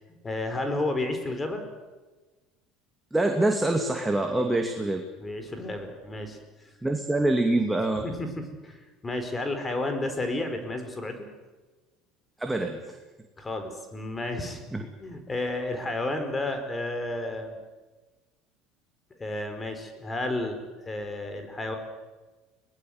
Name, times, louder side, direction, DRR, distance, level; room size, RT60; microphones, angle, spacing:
voice 1, 0.2-1.6 4.3-4.5 5.2-6.4 8.0-11.3 13.4-14.6 15.0-17.6 19.2-21.8, left 2 dB, 20° left, 7 dB, 4.7 m, -32 dB
voice 2, 3.1-5.0 6.8-8.0 12.4-13.0 14.7-14.8, right 2 dB, 10° right, 4 dB, 2.4 m, -25 dB
22.5 x 19.5 x 8.0 m, 1.2 s
hypercardioid pair, 75°, 0 cm